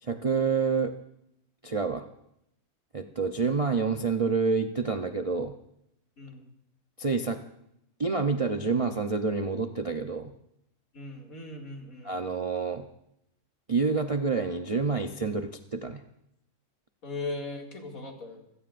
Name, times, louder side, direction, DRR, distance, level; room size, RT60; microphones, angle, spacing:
voice 1, 0.0-0.9 1.6-2.1 2.9-5.5 7.0-7.4 8.0-10.3 12.0-12.9 13.7-16.0, right 4 dB, 65° right, 6 dB, 0.3 m, -28 dB
voice 2, 6.2-6.5 10.9-12.2 17.0-18.4, left 2 dB, 60° left, 0 dB, 2.8 m, -38 dB
26.5 x 16.5 x 2.5 m, 0.79 s
omnidirectional pair, 1.7 m